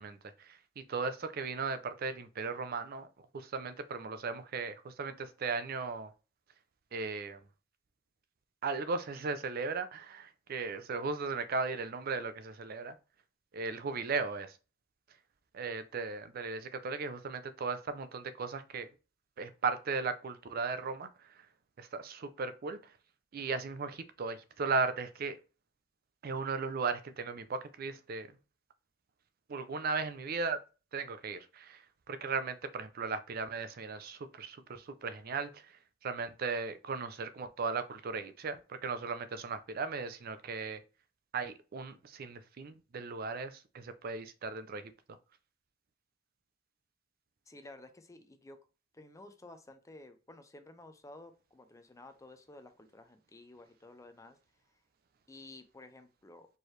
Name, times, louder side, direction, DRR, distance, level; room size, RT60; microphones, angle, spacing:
voice 1, 0.0-3.1 3.3-6.1 6.9-7.4 8.6-13.0 13.5-14.6 15.5-18.9 19.4-21.5 21.8-22.9 23.3-25.4 26.2-28.3 29.5-30.6 30.9-40.8 41.3-44.9, right 4 dB, 50° right, 0.4 m, -37 dB
voice 2, 47.5-48.6 48.9-54.4 55.3-56.5, left 2 dB, 15° left, 0.5 m, -53 dB
4.5 x 3.2 x 3.1 m
head